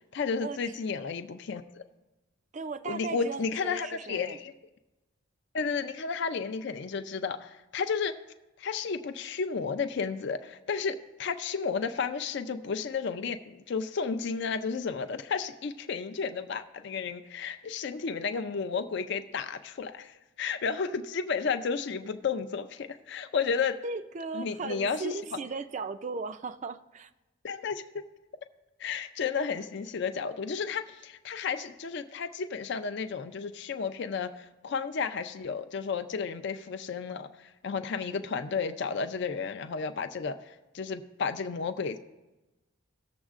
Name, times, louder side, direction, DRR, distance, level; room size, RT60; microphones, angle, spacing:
voice 1, 0.0-1.8 2.9-4.5 5.5-8.2 8.6-23.8 24.3-25.1 27.4-28.0 28.8-42.0, left 5 dB, 55° left, 0.4 m, -32 dB
voice 2, 2.5-4.4 23.8-27.1, right 4 dB, 35° right, 0.3 m, -37 dB
17.5 x 7.1 x 2.5 m
head